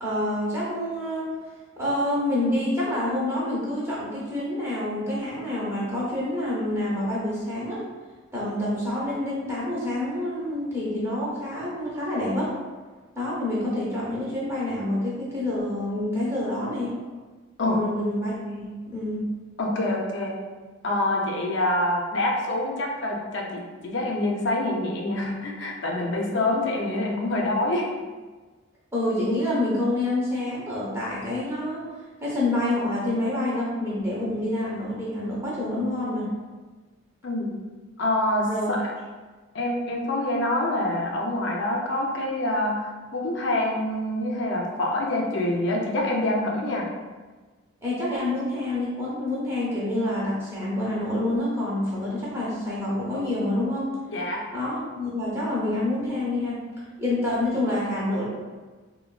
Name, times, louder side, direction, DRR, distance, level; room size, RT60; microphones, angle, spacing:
voice 1, 0.0-1.3 1.8-7.8 8.3-12.5 13.1-16.9 17.6-19.2 28.9-31.8 32.2-36.3 38.5-38.7 47.8-54.0 54.5-56.6 57.0-58.3, left 1 dB, 15° right, -7 dB, 0.7 m, -27 dB
voice 2, 19.6-20.3 20.8-27.9 37.2-37.5 38.0-38.9 39.5-46.9 54.1-54.4, left 1 dB, 60° left, -1 dB, 0.5 m, -26 dB
3.2 x 2.2 x 2.3 m, 1.3 s
head